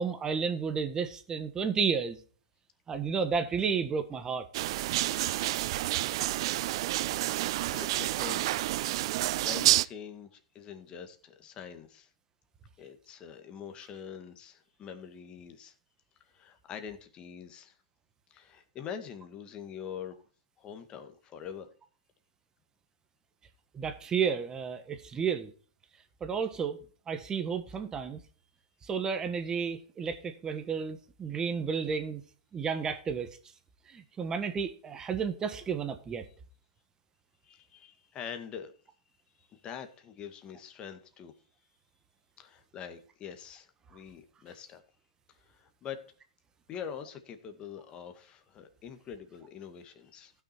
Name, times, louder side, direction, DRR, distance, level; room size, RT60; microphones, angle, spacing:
voice 1, 0.0-2.2 2.9-4.5 23.7-25.5 26.2-26.8 27.1-28.2 28.8-32.2 32.5-33.4 33.9-36.2, right 6 dB, 20° right, 1.5 m, -32 dB
sound 1, 4.5-9.9, right 16 dB, 55° right, 0.5 m, -29 dB
voice 2, 7.7-8.7 9.4-12.1 12.8-15.7 16.3-17.7 18.3-20.2 20.6-21.7 37.4-38.7 39.4-41.3 42.4-44.8 45.4-46.0 46.7-50.3, left 8 dB, 30° left, 1.9 m, -44 dB
15.5 x 6.3 x 4.4 m
hypercardioid pair, 110°, 3 cm